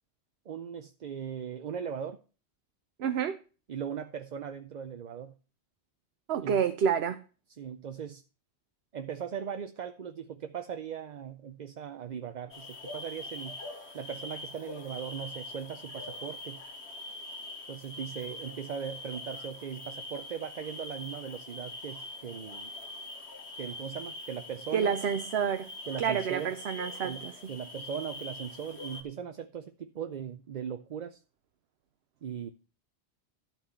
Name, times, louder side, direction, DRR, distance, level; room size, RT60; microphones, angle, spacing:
voice 1, 0.5-2.2 3.7-5.3 6.4-6.6 7.6-8.2 8.9-13.6 13.9-16.6 17.7-22.7 23.6-24.9 25.9-26.5 27.0-31.2 32.2-32.5, right 8 dB, 50° right, 0.7 m, -39 dB
voice 2, 3.0-3.4 6.3-7.2 24.7-25.7 26.0-27.3, right 7 dB, 75° right, 1.0 m, -28 dB
sound 1, 12.5-29.0, left 2 dB, 80° left, 2.3 m, -43 dB
13.0 x 4.5 x 6.8 m
omnidirectional pair, 1.1 m